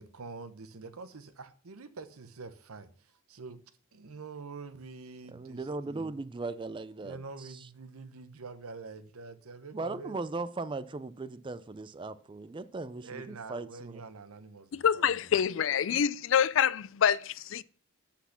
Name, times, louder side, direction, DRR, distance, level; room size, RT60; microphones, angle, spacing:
voice 1, 0.0-3.6 3.9-6.1 7.0-10.2 13.0-15.1, right 4 dB, 85° right, 0.8 m, -46 dB
voice 2, 5.3-7.6 9.7-14.0, right 3 dB, 20° right, 0.4 m, -38 dB
voice 3, 14.7-17.6, left 8 dB, 60° left, 0.4 m, -26 dB
8.2 x 5.8 x 5.8 m
head